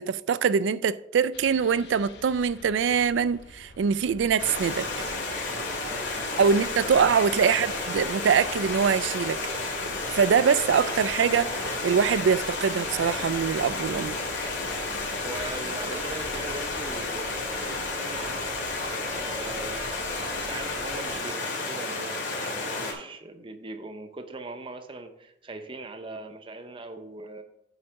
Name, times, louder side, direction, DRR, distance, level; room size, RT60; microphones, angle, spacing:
voice 1, 0.0-4.9 6.4-9.4 10.1-14.1, right 6 dB, 85° right, 0.4 m, -23 dB
sound 1, 1.3-21.2, left 1 dB, 65° left, 0.9 m, -48 dB
Stream, 4.4-22.9, left 3 dB, 80° left, 2.2 m, -31 dB
voice 2, 5.5-6.1 6.8-7.1 9.8-10.1 14.6-18.6 19.1-22.1 22.4-27.4, right 2 dB, 30° right, 0.7 m, -41 dB
8.6 x 4.0 x 5.6 m
head